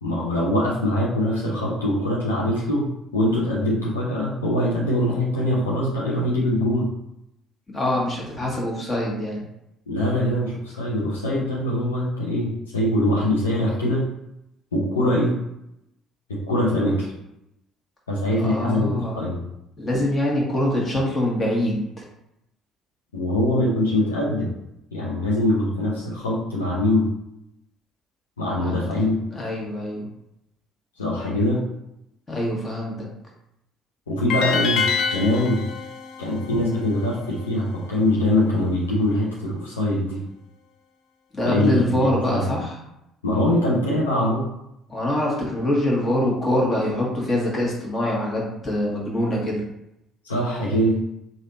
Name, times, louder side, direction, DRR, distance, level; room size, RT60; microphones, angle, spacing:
voice 1, 0.0-2.9 3.1-6.9 9.9-14.0 14.7-15.3 16.3-17.1 18.1-19.4 23.1-24.5 24.9-27.0 28.4-29.2 31.0-31.6 34.1-35.6 36.2-40.2 41.4-42.4 43.2-44.4 50.2-51.0, left 1 dB, 90° left, -5 dB, 0.8 m, -23 dB
voice 2, 7.7-9.4 18.4-19.2 19.8-22.0 28.5-28.8 29.3-30.1 32.3-33.1 36.5-36.6 41.3-42.7 44.9-49.6, left 1 dB, 30° left, -3 dB, 1.5 m, -24 dB
sound 1, 34.3-37.4, left 5 dB, 60° left, 0.4 m, -27 dB
3.3 x 2.6 x 4.0 m, 0.83 s
hypercardioid pair, 55°, 0 cm